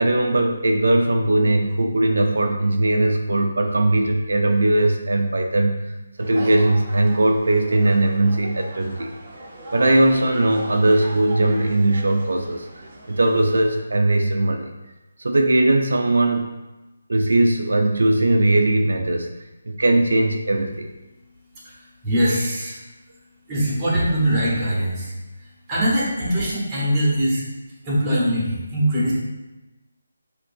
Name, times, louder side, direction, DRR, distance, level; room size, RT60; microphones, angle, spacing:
voice 1, 0.0-5.8 6.2-9.1 9.7-12.7 13.1-14.7 15.2-16.5 17.1-19.3 19.7-20.9, right 2 dB, 80° right, 3 dB, 0.5 m, -19 dB
sound 1, 6.2-13.8, right 1 dB, 30° right, 0.8 m, -38 dB
voice 2, 22.0-22.8 23.5-25.1 25.7-27.4 27.8-29.1, equal, 10° right, -7 dB, 1.2 m, -22 dB
6.3 x 2.7 x 2.6 m, 1.1 s
hypercardioid pair, 170°, 0 cm